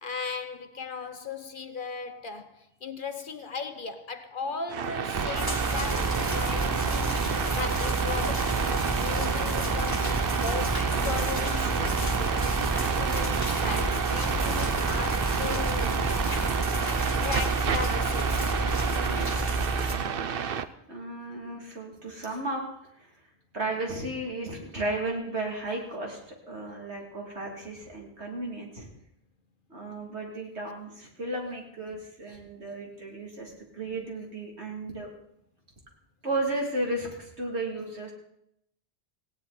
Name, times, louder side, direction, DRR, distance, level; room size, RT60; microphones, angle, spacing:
voice 1, 0.0-7.2 7.5-10.1 10.4-12.5 12.8-16.1 17.2-18.5, left 5 dB, 50° left, 1.0 m, -37 dB
sound 1, 4.7-20.7, right 7 dB, 60° right, 0.9 m, -31 dB
sound 2, 5.1-20.1, right 4 dB, 35° right, 0.3 m, -31 dB
sound 3, 5.3-19.9, right 1 dB, 20° left, 2.9 m, -31 dB
voice 2, 19.0-20.4 20.9-22.6 23.0-23.1 23.5-26.2 26.5-28.9 29.7-35.1 36.2-38.1, right 2 dB, 75° right, 3.4 m, -34 dB
18.5 x 16.5 x 4.3 m
omnidirectional pair, 1.1 m